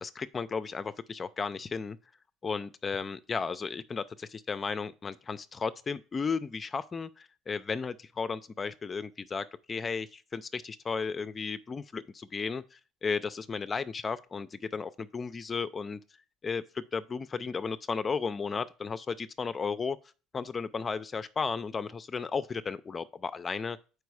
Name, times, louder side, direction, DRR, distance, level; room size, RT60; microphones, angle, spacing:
voice 1, 0.0-2.0 2.4-16.0 16.4-20.0 20.3-23.8, left 5 dB, 25° left, 0.4 m, -34 dB
6.9 x 4.8 x 4.8 m
cardioid pair, 115°, 0 cm